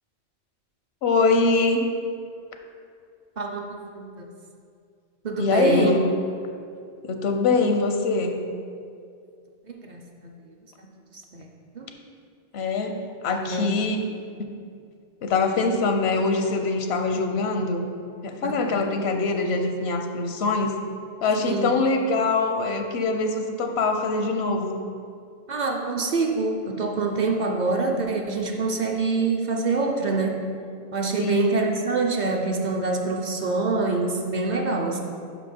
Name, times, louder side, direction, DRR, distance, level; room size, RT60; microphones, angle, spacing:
voice 1, 1.0-1.9 5.4-6.1 7.0-8.4 12.5-12.9 13.2-14.0 15.2-17.9 18.2-20.7 21.2-24.8 31.2-31.5, left 3 dB, 80° left, 5 dB, 0.9 m, -23 dB
voice 2, 3.4-4.3 5.2-5.9 9.7-10.0 10.8-10.9 11.3-11.5 11.7-11.9 13.4-13.7 18.4-18.8 21.4-21.7 25.5-30.6 30.9-35.0, right 3 dB, 50° right, 1 dB, 0.7 m, -25 dB
6.0 x 4.9 x 5.2 m, 2.4 s
omnidirectional pair, 1.0 m